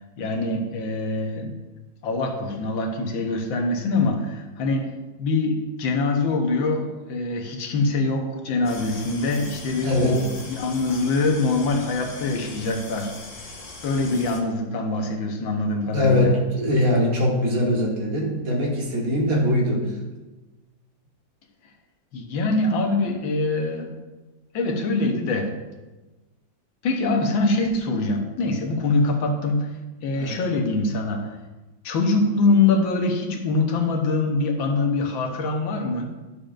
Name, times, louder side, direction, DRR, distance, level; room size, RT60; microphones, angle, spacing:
voice 1, 0.2-1.6 2.0-4.9 5.2-13.1 13.8-16.3 22.1-24.0 24.5-25.5 26.8-29.7 30.0-31.3 31.8-36.1, left 3 dB, 90° left, 2 dB, 1.8 m, -24 dB
sound 1, 8.6-14.4, left 2 dB, 30° left, 0.7 m, -40 dB
voice 2, 9.8-10.3 15.9-20.0 30.1-30.5, left 1 dB, 50° right, -1 dB, 1.8 m, -22 dB
11.5 x 6.8 x 2.5 m, 1.2 s
omnidirectional pair, 2.1 m